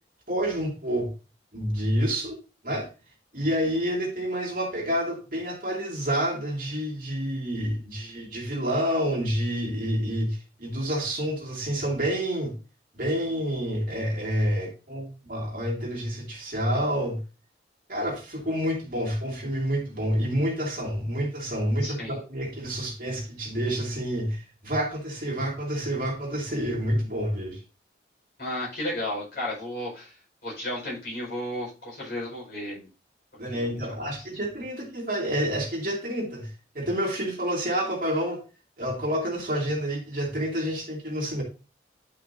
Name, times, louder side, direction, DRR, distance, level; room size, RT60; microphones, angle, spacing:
voice 1, 0.3-1.1 1.5-2.4 2.6-2.9 3.3-12.6 12.9-17.2 17.9-22.0 22.3-27.6 33.4-36.5 36.7-38.4 38.8-41.4, equal, 50° right, 2.4 m, -28 dB
voice 2, 21.8-22.1 28.4-30.1 30.4-32.9 33.5-34.2, left 1 dB, 55° left, 4.7 m, -34 dB
10.0 x 5.7 x 2.7 m
head